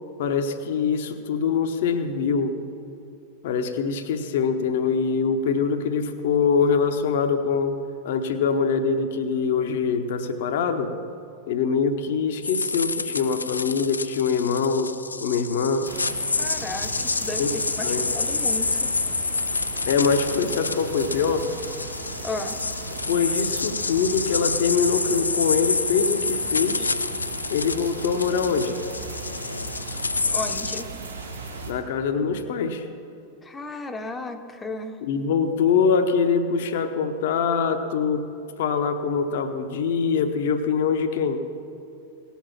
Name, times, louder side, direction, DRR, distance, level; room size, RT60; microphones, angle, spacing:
voice 1, 0.2-2.6 3.4-7.7 8.0-10.9 11.5-14.9 15.2-15.9 17.4-17.5 17.8-18.1 19.9-21.5 23.1-26.9 27.5-28.7 31.7-32.9 35.0-38.3 38.6-41.4, left 5 dB, 55° left, 8 dB, 0.8 m, -24 dB
sound 1, 12.4-30.8, left 4 dB, 80° left, 0.4 m, -28 dB
sound 2, 15.8-31.7, right 3 dB, 80° right, 1.8 m, -37 dB
voice 2, 16.4-18.9 22.2-22.6 30.3-30.9 33.4-35.0, left 2 dB, 15° left, 8 dB, 0.8 m, -34 dB
18.0 x 7.2 x 5.8 m, 2.6 s
figure-of-eight pair, 90°, 0 cm